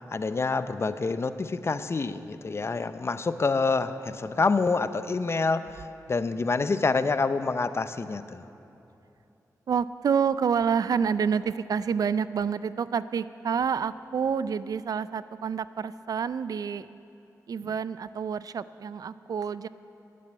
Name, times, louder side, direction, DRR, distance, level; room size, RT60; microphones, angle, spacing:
voice 1, 0.1-5.7 6.1-8.4, left 4 dB, 40° left, 12 dB, 0.6 m, -27 dB
voice 2, 9.7-16.9 17.5-19.7, right 6 dB, 70° right, 16 dB, 0.4 m, -28 dB
11.0 x 7.6 x 9.7 m, 2.8 s
cardioid pair, 65°, 7 cm